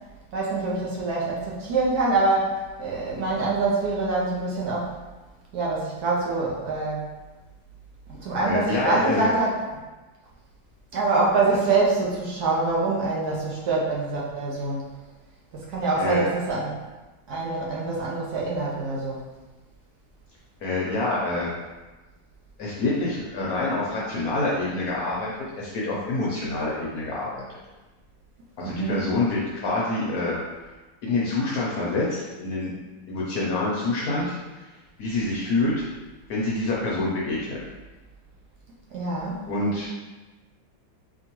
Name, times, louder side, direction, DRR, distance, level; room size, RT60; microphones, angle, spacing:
voice 1, 0.3-5.0 5.5-7.1 8.1-9.6 10.9-14.8 15.5-16.7 17.3-19.2 28.6-29.1 38.9-39.4, right 3 dB, 65° right, -4 dB, 1.1 m, -25 dB
voice 2, 8.4-9.3 16.0-16.2 20.6-21.5 22.6-27.6 28.6-30.4 31.0-32.7 33.1-34.6 35.0-35.8 36.3-37.6 39.5-39.9, left 2 dB, 65° left, -5 dB, 1.0 m, -26 dB
4.4 x 2.9 x 2.9 m, 1.2 s
omnidirectional pair, 2.1 m